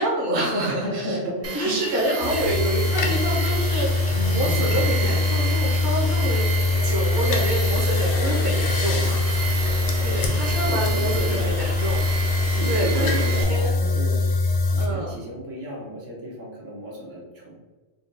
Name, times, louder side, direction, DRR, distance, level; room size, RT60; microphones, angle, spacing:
voice 1, 0.0-1.2 1.5-12.0 12.6-13.2 13.5-13.7 14.8-15.1, right 1 dB, 65° right, -5 dB, 1.2 m, -27 dB
voice 2, 0.7-1.8 9.9-11.6 12.5-14.3 14.6-17.5, equal, 85° right, -4 dB, 1.4 m, -33 dB
Tools, 1.4-13.4, right 4 dB, 45° right, 0.5 m, -31 dB
sound 1, 2.2-14.9, left 3 dB, 65° left, 0.9 m, -23 dB
4.4 x 2.2 x 3.8 m, 1.3 s
omnidirectional pair, 1.3 m